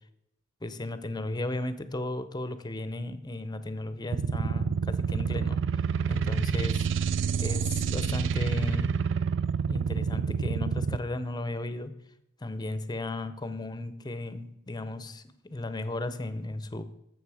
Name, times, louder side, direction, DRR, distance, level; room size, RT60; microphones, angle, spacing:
voice 1, 0.6-5.6 6.1-6.9 7.4-8.9 9.7-11.9 12.4-16.8, left 2 dB, 20° left, 11 dB, 0.7 m, -35 dB
sound 1, 4.1-11.0, right 6 dB, 65° right, 0.4 m, -28 dB
14.5 x 6.3 x 4.8 m, 0.83 s
head